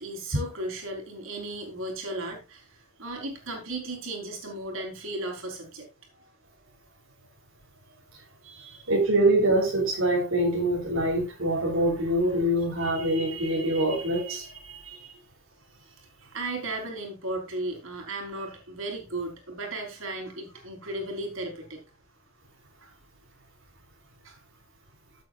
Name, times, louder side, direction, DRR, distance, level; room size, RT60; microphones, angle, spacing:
voice 1, 0.0-5.9 8.4-8.9 14.9-15.1 15.8-21.8 22.8-22.9 24.2-24.4, right 2 dB, 70° right, 4.1 m, -36 dB
voice 2, 8.9-15.0, right 1 dB, 90° right, 3.5 m, -25 dB
14.0 x 8.2 x 2.5 m
head